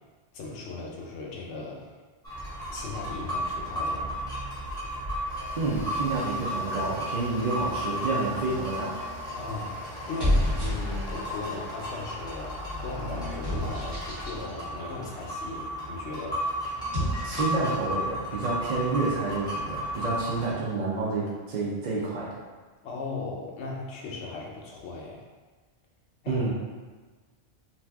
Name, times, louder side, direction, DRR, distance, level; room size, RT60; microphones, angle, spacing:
voice 1, 0.3-1.9 2.7-4.3 9.4-9.8 10.1-16.6 17.3-17.5 22.8-25.2 26.2-26.4, left 3 dB, 80° left, -1 dB, 0.9 m, -38 dB
sound 1, 2.2-20.5, equal, 5° left, 0.9 m, -34 dB
sound 2, 5.3-14.1, left 2 dB, 60° left, 0.3 m, -48 dB
voice 2, 5.6-9.0 17.2-22.4 26.3-26.5, right 3 dB, 55° right, -6 dB, 0.5 m, -29 dB
sound 3, 8.7-9.1 10.0-11.3 12.1-14.4 16.7-17.7, left 1 dB, 30° right, 1.3 m, -30 dB
2.7 x 2.3 x 3.4 m, 1.4 s
omnidirectional pair, 1.1 m